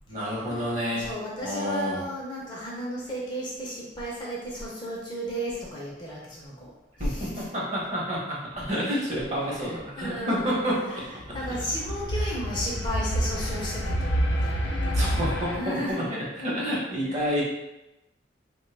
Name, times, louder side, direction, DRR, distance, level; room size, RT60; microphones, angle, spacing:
voice 1, 0.1-1.1 1.4-2.1 7.0-11.0 14.9-17.4, equal, 40° right, -5 dB, 0.9 m, -29 dB
voice 2, 0.9-6.7 7.0-7.4 9.6-10.6 11.3-15.2 15.5-16.0 17.1-17.4, equal, 25° left, -4 dB, 0.6 m, -34 dB
sound 1, 11.2-15.6, equal, 90° left, 0.6 m, -28 dB
3.1 x 2.2 x 3.2 m, 0.93 s
head